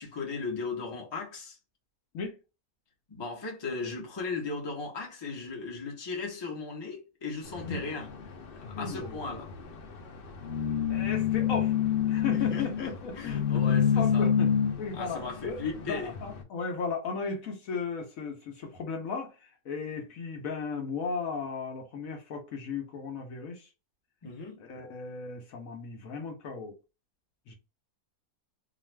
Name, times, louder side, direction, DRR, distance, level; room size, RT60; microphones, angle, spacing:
voice 1, 0.0-1.6 3.1-8.1 8.8-9.5 12.3-14.3 14.9-16.1 24.2-24.6, left 4 dB, 25° left, 0.6 m, -37 dB
sound 1, 7.4-16.4, left 8 dB, 80° left, 0.5 m, -29 dB
voice 2, 8.8-9.3 10.9-11.7 12.1-23.7 24.6-26.7 27.5-27.6, left 5 dB, 65° left, 1.0 m, -36 dB
2.5 x 2.4 x 3.2 m
omnidirectional pair, 1.7 m